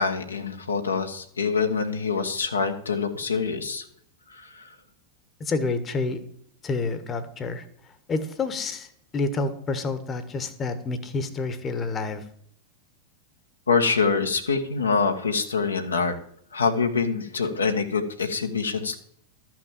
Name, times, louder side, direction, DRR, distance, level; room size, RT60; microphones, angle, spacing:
voice 1, 0.0-3.8 4.3-4.7 13.7-16.2 16.5-19.0, left 5 dB, 75° left, 4 dB, 1.2 m, -25 dB
voice 2, 5.4-6.2 6.6-7.6 8.1-8.9 9.1-12.2, left 3 dB, 25° left, 11 dB, 1.3 m, -28 dB
12.5 x 6.1 x 7.3 m, 0.67 s
figure-of-eight pair, 90°, 0 cm